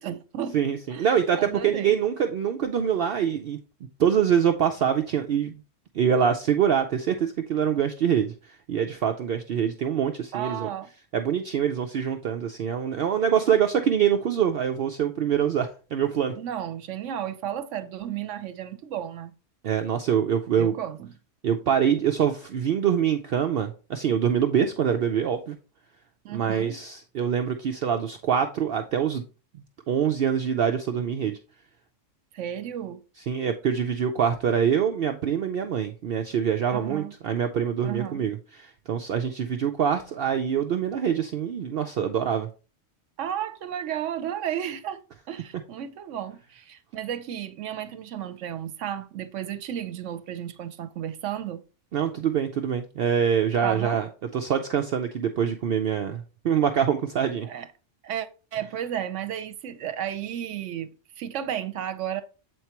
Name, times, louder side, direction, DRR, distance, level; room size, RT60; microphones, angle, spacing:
voice 1, 0.0-0.6 0.9-1.1 1.3-2.0 10.3-10.9 16.4-19.3 20.6-21.1 26.2-26.8 32.3-33.0 36.7-37.1 37.8-38.2 43.2-45.0 45.3-51.6 53.6-54.0 57.5-57.7 58.0-60.9 61.2-62.2, right 10 dB, 80° right, 1.0 m, -33 dB
voice 2, 0.5-3.6 4.0-5.6 5.9-10.7 11.1-16.3 19.6-20.7 21.4-25.6 26.3-29.2 29.9-31.4 33.3-42.5 51.9-54.1 54.3-57.5, right 8 dB, 60° right, 0.7 m, -25 dB
7.9 x 4.6 x 2.9 m
omnidirectional pair, 1.3 m